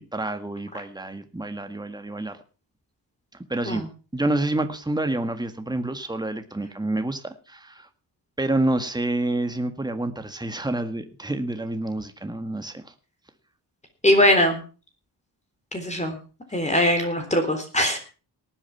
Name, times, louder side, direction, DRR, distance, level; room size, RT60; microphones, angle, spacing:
voice 1, 0.0-2.4 3.5-3.9 4.1-7.9 8.4-12.9, right 2 dB, 10° right, 8 dB, 1.8 m, -28 dB
voice 2, 14.0-14.6 15.7-16.2 16.5-18.0, left 1 dB, 15° left, 5 dB, 3.8 m, -21 dB
18.5 x 9.0 x 5.9 m, 0.36 s
wide cardioid pair, 115°, 40 cm